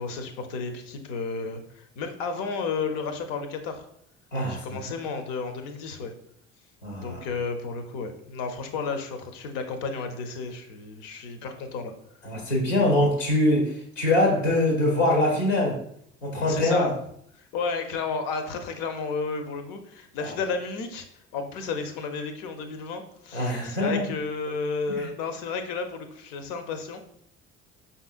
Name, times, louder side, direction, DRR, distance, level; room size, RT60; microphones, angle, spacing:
voice 1, 0.0-3.9 4.4-6.1 6.9-11.9 16.5-17.0 17.3-21.1 21.3-27.1, left 4 dB, 60° left, 7 dB, 0.7 m, -32 dB
voice 2, 4.3-4.8 6.8-7.2 12.2-15.8 16.2-16.9 20.2-20.3 23.3-24.0 24.9-25.1, left 1 dB, 90° left, 0 dB, 1.1 m, -23 dB
5.3 x 2.7 x 2.4 m, 0.69 s
hypercardioid pair, 55°, 37 cm